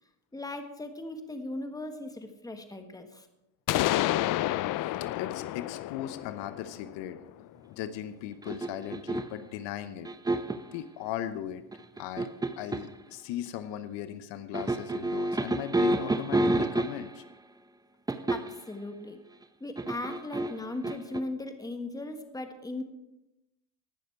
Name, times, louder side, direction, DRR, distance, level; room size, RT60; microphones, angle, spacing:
voice 1, 0.3-3.3 18.3-19.2 19.6-22.8, left 2 dB, 10° left, 7 dB, 1.4 m, -38 dB
sound 1, 3.7-7.5, left 15 dB, 50° left, 0.4 m, -30 dB
voice 2, 4.7-7.2 7.7-10.1 10.7-11.6 12.0-12.3 12.6-17.2, left 11 dB, 75° left, 12 dB, 0.9 m, -38 dB
sound 2, 8.4-9.4 10.0-10.7 11.7-12.9 14.5-17.2 18.1-18.6 19.8-21.2, right 2 dB, 10° right, 0.6 m, -29 dB
18.5 x 6.6 x 4.6 m, 0.93 s
supercardioid pair, 95°, 44 cm